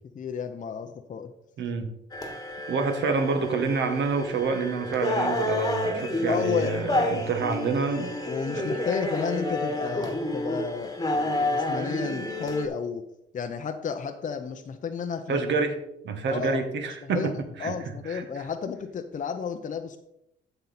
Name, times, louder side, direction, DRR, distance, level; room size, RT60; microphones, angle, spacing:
voice 1, 0.1-1.3 6.3-6.7 7.5-7.6 8.3-13.0 13.3-15.4 16.3-16.6 17.0-17.3 17.6-20.0, left 6 dB, 40° left, 6 dB, 0.6 m, -32 dB
voice 2, 1.6-1.9 2.7-8.2 8.5-8.7 15.3-15.8 16.0-17.7 18.1-18.2, right 4 dB, 65° right, 7 dB, 1.4 m, -27 dB
sound 1, 2.1-12.7, left 1 dB, 20° left, 1.3 m, -30 dB
8.4 x 6.7 x 4.1 m, 0.81 s
cardioid pair, 90°, 20 cm